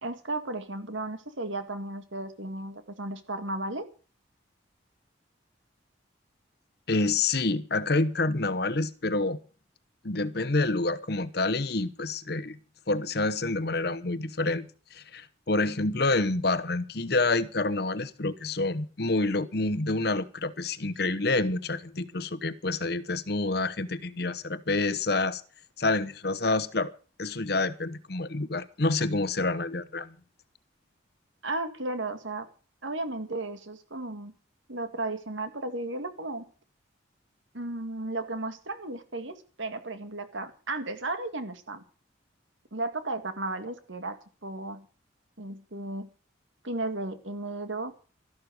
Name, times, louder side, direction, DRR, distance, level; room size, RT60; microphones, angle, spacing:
voice 1, 0.0-3.8 31.4-32.5 32.8-34.3 34.7-36.5 37.5-41.8 42.7-44.9 45.4-46.1 46.6-47.9, right 2 dB, 80° right, 2.0 m, -34 dB
voice 2, 6.9-9.4 10.0-12.6 12.9-25.4 25.8-26.9 27.2-30.2, left 2 dB, 55° left, 1.0 m, -28 dB
13.5 x 12.0 x 6.4 m
head